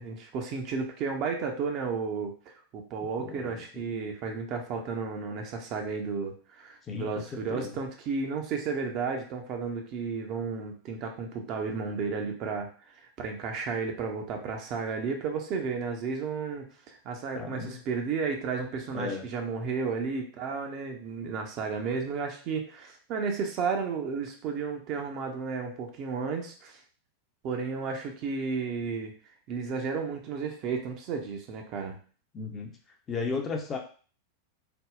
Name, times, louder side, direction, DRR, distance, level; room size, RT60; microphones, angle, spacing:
voice 1, 0.0-12.7 13.2-26.8 27.4-29.1 29.5-32.0, right 5 dB, 40° right, 3 dB, 0.6 m, -33 dB
voice 2, 3.2-4.1 6.9-7.7 17.3-17.8 18.9-19.2 32.3-32.7 33.1-33.8, left 4 dB, 25° left, 2 dB, 0.5 m, -35 dB
3.4 x 2.0 x 2.4 m, 0.39 s
figure-of-eight pair, 90°, 0 cm